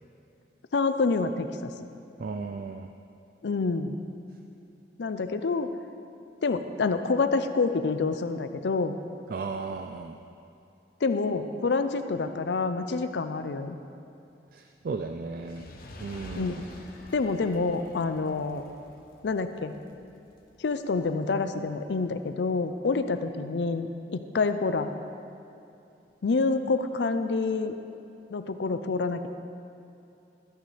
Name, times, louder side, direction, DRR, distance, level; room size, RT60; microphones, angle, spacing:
voice 1, 0.7-1.7 3.4-4.0 5.0-5.7 6.4-9.0 11.0-13.8 16.3-16.6 17.1-18.6 19.2-19.7 20.6-24.9 26.2-27.7 28.3-29.3, left 4 dB, 75° left, 9 dB, 0.5 m, -27 dB
voice 2, 2.2-2.9 9.3-10.2 14.5-15.7 16.0-16.6, right 4 dB, 55° right, 5 dB, 0.4 m, -35 dB
Fire, 15.3-21.7 22.4-22.5, left 1 dB, 55° left, 1.0 m, -48 dB
13.5 x 9.3 x 3.3 m, 2.7 s
head